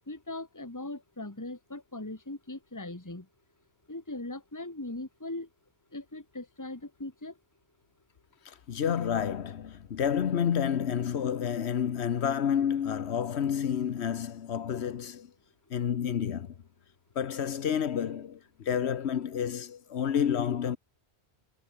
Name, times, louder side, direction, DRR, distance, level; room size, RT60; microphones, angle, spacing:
voice 1, 0.1-3.3 3.9-5.5 5.9-7.3, left 2 dB, 15° left, 2.1 m, -39 dB
voice 2, 8.4-15.3 15.7-16.5 17.2-20.8, left 8 dB, 75° left, 1.2 m, -29 dB
omnidirectional pair, 1.1 m